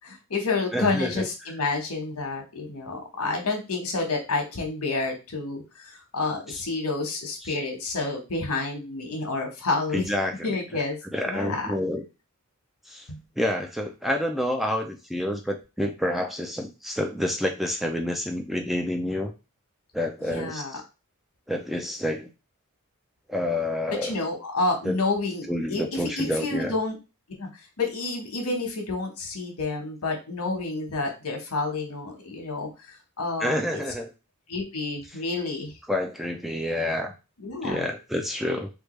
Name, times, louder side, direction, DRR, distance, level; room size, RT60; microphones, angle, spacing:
voice 1, 0.0-10.0 10.4-11.0 11.2-11.7 13.1-13.2 20.3-20.8 23.9-27.0 27.4-27.5 27.8-33.8 34.5-35.7 37.4-37.9, left 3 dB, 75° left, 2 dB, 1.2 m, -29 dB
voice 2, 0.7-1.3 6.5-6.6 7.4-7.6 9.9-10.3 10.7-10.8 11.1-12.1 12.9-13.1 13.4-19.3 19.9-20.8 21.5-22.3 23.3-24.1 24.8-25.0 25.5-26.8 33.4-34.1 35.9-37.1 37.6-38.7, left 1 dB, ahead, 3 dB, 0.3 m, -28 dB
3.4 x 2.4 x 3.1 m, 0.28 s
head